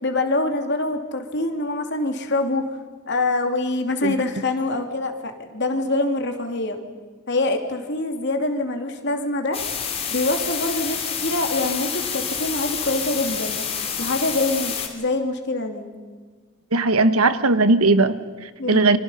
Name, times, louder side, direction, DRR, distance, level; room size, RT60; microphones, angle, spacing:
voice 1, 0.0-2.7 3.1-6.8 7.3-9.6 10.1-13.6 14.0-15.9 18.6-18.9, left 2 dB, 50° left, 5 dB, 2.7 m, -25 dB
sound 1, 9.5-14.9, left 7 dB, 25° left, 3.1 m, -28 dB
voice 2, 16.7-19.0, right 3 dB, 80° right, 12 dB, 1.3 m, -18 dB
29.5 x 25.0 x 5.6 m, 1.5 s
head